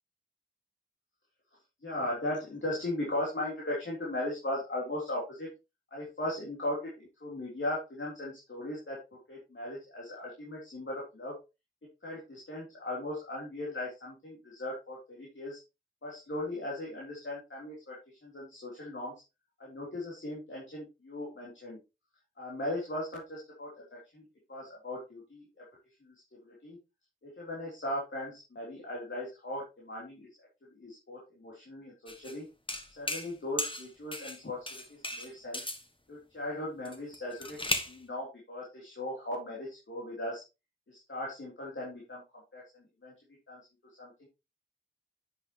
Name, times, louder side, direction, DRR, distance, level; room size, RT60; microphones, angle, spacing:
voice 1, 1.8-5.5 5.9-9.0 9.3-11.3 12.0-15.6 16.0-19.1 19.6-21.8 22.4-24.2 24.5-25.4 26.0-26.1 26.4-26.8 27.2-30.3 30.7-32.5 33.0-35.6 36.1-37.6 37.9-40.4 40.9-42.2 42.5-43.1 43.5-43.6 44.0-44.3, left 1 dB, 70° left, -4 dB, 3.5 m, -38 dB
sound 1, 32.1-32.4 32.7-33.3 33.6-34.4 34.7-35.8 36.8-38.0, left 1 dB, 25° left, 1.5 m, -35 dB
9.9 x 8.0 x 3.0 m, 0.27 s
wide cardioid pair, 45°, 20 cm